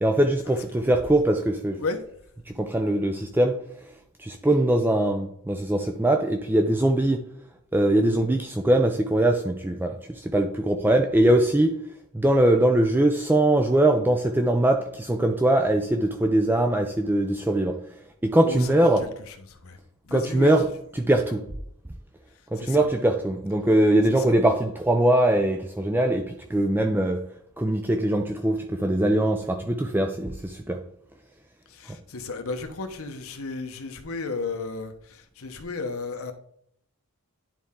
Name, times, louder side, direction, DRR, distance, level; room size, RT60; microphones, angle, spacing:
voice 1, 0.0-1.8 2.5-3.6 4.2-7.2 7.7-11.8 12.1-17.8 18.2-19.0 20.1-20.7 21.0-21.4 22.5-27.3 27.6-30.8 31.9-32.0, right 1 dB, 10° right, 0.4 m, -22 dB
voice 2, 18.4-19.8 20.0-20.6 22.6-22.9 24.1-24.3 31.7-36.3, left 3 dB, 65° left, 1.0 m, -34 dB
10.0 x 4.3 x 3.7 m
head